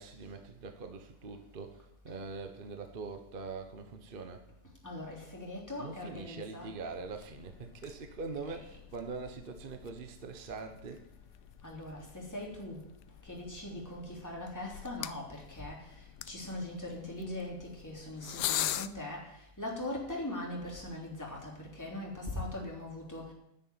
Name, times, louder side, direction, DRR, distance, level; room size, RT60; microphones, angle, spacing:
voice 1, 0.0-4.4 5.8-11.1, right 4 dB, 35° right, 7 dB, 1.1 m, -43 dB
voice 2, 4.8-6.7 11.6-12.9 13.2-23.3, left 1 dB, 10° left, -3 dB, 3.3 m, -41 dB
sound 1, 6.9-18.9, left 13 dB, 85° left, 1.2 m, -43 dB
10.0 x 7.9 x 9.3 m, 0.77 s
omnidirectional pair, 1.7 m